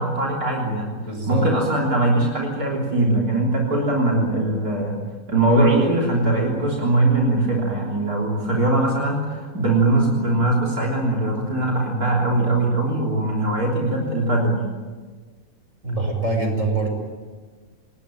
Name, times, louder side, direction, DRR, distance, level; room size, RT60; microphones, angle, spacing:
voice 1, 0.0-0.9 1.3-5.0 5.3-14.6, right 2 dB, 85° right, -2 dB, 4.1 m, -21 dB
voice 2, 1.0-1.5 15.8-16.9, right 3 dB, 55° right, 3 dB, 6.2 m, -24 dB
27.5 x 20.0 x 9.1 m, 1.4 s
omnidirectional pair, 1.5 m